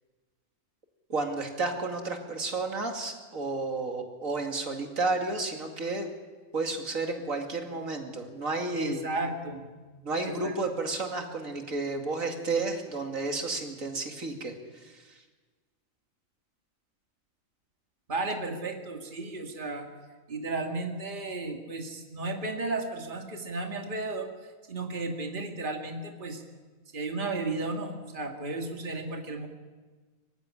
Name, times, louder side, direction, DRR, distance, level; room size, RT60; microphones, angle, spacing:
voice 1, 1.1-6.1 6.5-9.0 10.0-15.2, right 3 dB, 75° right, 3 dB, 2.7 m, -32 dB
voice 2, 8.7-9.7 10.2-10.6 18.1-19.9 20.3-26.4 26.9-29.5, right 2 dB, 40° right, 2 dB, 2.2 m, -34 dB
24.5 x 15.5 x 9.8 m, 1.3 s
omnidirectional pair, 1.4 m